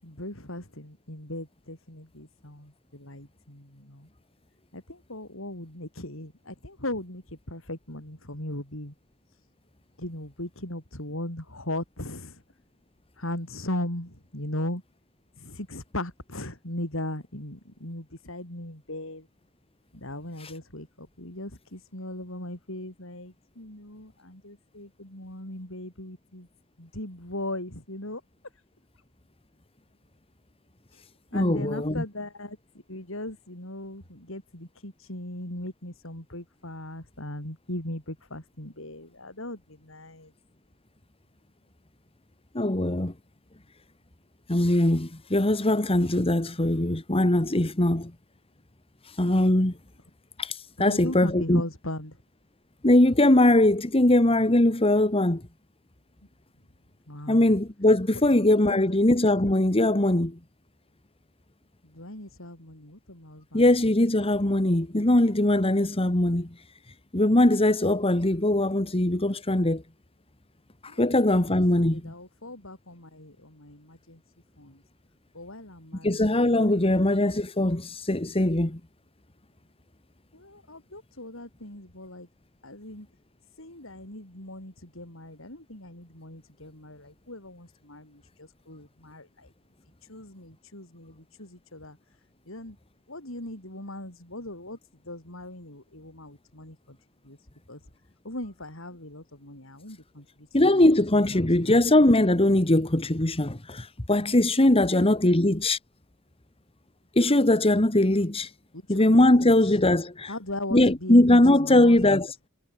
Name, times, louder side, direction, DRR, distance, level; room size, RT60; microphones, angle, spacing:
voice 1, 0.0-4.1 4.7-8.9 10.0-12.4 13.2-14.8 15.4-19.3 19.9-26.5 26.8-28.2 31.3-32.6 32.9-40.3 50.8-52.2 57.1-57.5 58.1-58.2 58.7-58.8 61.8-63.7 70.9-74.2 74.6-74.8 75.3-76.4 80.3-82.3 82.6-83.1 83.6-89.5 90.1-92.0 92.5-92.8 93.1-94.8 95.0-97.0 97.2-97.4 97.7-97.8 98.2-100.9 101.6-101.7 104.7-105.5 108.7-109.5 110.3-112.0, left 1 dB, 70° left, 7.7 m, -38 dB
voice 2, 31.3-32.0 42.5-43.1 44.5-48.1 49.1-49.7 50.4-51.6 52.8-55.4 57.3-60.4 63.5-66.5 67.1-69.8 70.8-72.1 76.0-78.8 100.5-105.8 107.2-108.5 108.9-110.3 110.7-112.3, left 1 dB, 25° left, 1.8 m, -21 dB
head